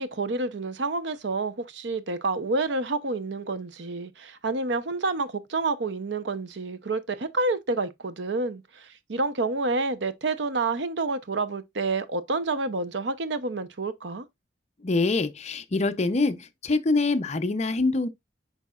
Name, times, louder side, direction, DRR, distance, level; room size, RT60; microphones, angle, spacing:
voice 1, 0.0-14.2, right 3 dB, 65° right, 0.7 m, -29 dB
voice 2, 14.8-18.1, left 3 dB, 35° left, 0.6 m, -25 dB
8.3 x 5.4 x 2.4 m
head